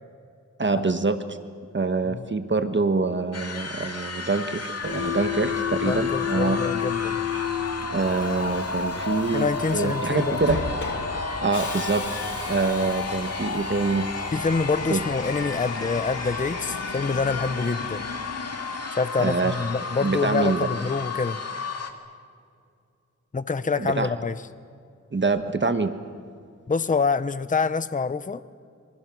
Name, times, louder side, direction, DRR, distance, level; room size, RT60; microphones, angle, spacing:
voice 1, 0.6-1.4 1.7-6.6 7.9-10.6 11.4-12.0 12.5-14.1 14.9-15.0 19.2-19.6 20.0-20.7 23.7-24.1 25.1-25.9, right 3 dB, 40° right, 9 dB, 1.3 m, -25 dB
sound 1, 3.3-21.9, left 3 dB, 55° left, 2.3 m, -32 dB
Subway metro underground, 4.8-19.2, left 7 dB, 75° left, 2.3 m, -34 dB
voice 2, 5.9-7.2 9.3-10.4 14.3-18.1 18.9-21.4 23.3-24.4 26.7-28.4, left 4 dB, 25° left, 14 dB, 0.7 m, -26 dB
27.5 x 26.5 x 6.1 m, 2.3 s
wide cardioid pair, 80°, 30 cm